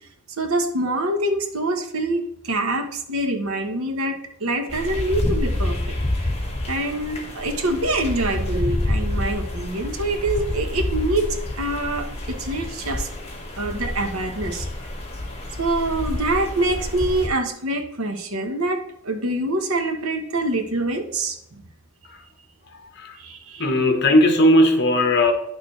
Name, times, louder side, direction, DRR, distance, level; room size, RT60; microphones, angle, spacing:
voice 1, 0.4-6.3 6.7-13.1 13.6-14.7 15.6-21.6 23.1-23.6, right 1 dB, 75° right, 6 dB, 1.2 m, -25 dB
sound 1, 4.7-17.3, left 1 dB, 30° left, 1.7 m, -28 dB
voice 2, 23.6-25.3, left 1 dB, 50° left, 6 dB, 1.2 m, -17 dB
10.0 x 6.4 x 3.3 m, 0.75 s
head